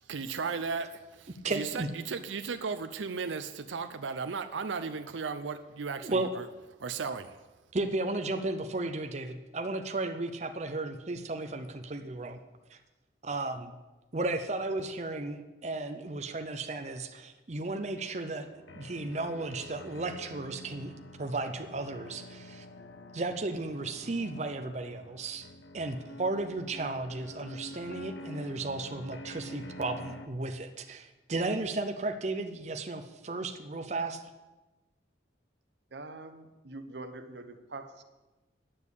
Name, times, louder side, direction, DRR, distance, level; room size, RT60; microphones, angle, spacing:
voice 1, 0.0-6.4 6.8-7.4, right 5 dB, 90° right, 8 dB, 0.6 m, -36 dB
voice 2, 1.4-1.9 6.0-6.3 7.7-12.4 12.7-12.8 13.2-13.7 14.1-18.5 18.7-20.9 21.2-22.7 23.1-25.5 25.7-34.2, right 2 dB, 35° right, 6 dB, 0.7 m, -34 dB
sound 1, 18.0-30.3, left 1 dB, 80° left, 0.9 m, -47 dB
voice 3, 35.9-38.0, right 2 dB, 65° right, 9 dB, 1.0 m, -44 dB
10.0 x 7.1 x 8.3 m, 1.1 s
head